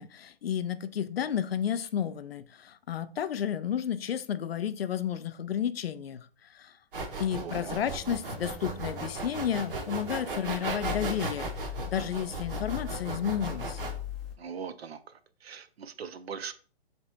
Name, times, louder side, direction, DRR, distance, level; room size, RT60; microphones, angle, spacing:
voice 1, 0.0-6.7 7.2-13.8, left 9 dB, 70° left, 0.5 m, -32 dB
sound 1, 6.9-13.9, right 3 dB, 60° right, 1.0 m, -36 dB
voice 2, 7.4-7.8 14.4-15.0 15.4-16.5, right 6 dB, 80° right, 0.6 m, -40 dB
sound 2, 7.8-10.2 10.8-14.3, left 9 dB, ahead, 0.5 m, -41 dB
7.2 x 2.9 x 2.2 m
hypercardioid pair, 135°, 31 cm